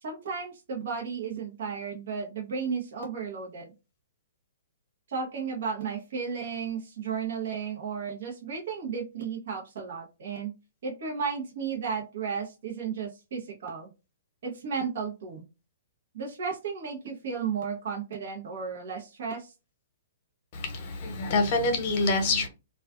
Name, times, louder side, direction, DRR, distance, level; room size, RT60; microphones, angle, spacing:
voice 1, 0.0-3.7 5.1-10.5 10.8-13.9 14.4-15.4 16.1-19.5, right 6 dB, 65° right, 0.8 m, -34 dB
voice 2, 20.5-22.5, left 3 dB, 40° left, 0.8 m, -26 dB
2.3 x 2.3 x 2.4 m
hypercardioid pair, 145°, 0 cm